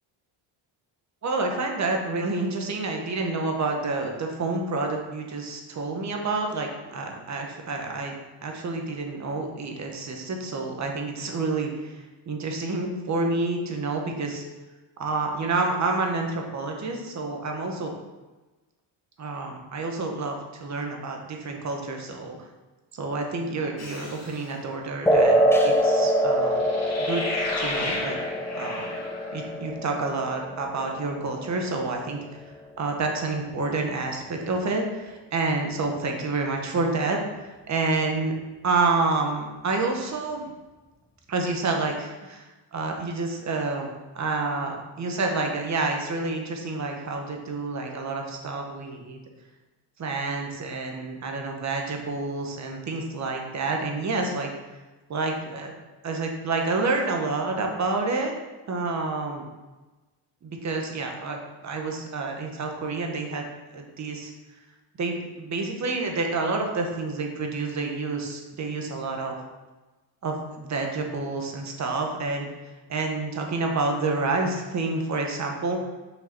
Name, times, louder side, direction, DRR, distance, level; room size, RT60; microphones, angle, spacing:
voice 1, 1.2-8.1 8.4-14.4 15.0-17.9 19.2-22.4 22.9-26.6 27.0-27.2 27.6-28.2 28.5-28.9 29.3-32.4 32.8-38.3 38.6-40.5 41.3-43.9 44.1-49.2 50.0-54.5 55.1-55.7 56.0-58.3 58.7-59.4 60.4-63.5 63.7-64.3 65.0-69.4 70.2-72.5 72.9-75.8, right 3 dB, 35° right, 2 dB, 1.4 m, -28 dB
sound 1, 23.8-24.5 26.6-29.5, left 2 dB, 35° left, 1.6 m, -33 dB
sound 2, 25.1-32.1, equal, 5° left, 0.5 m, -24 dB
6.7 x 5.8 x 6.1 m, 1.2 s
cardioid pair, 165°, 46 cm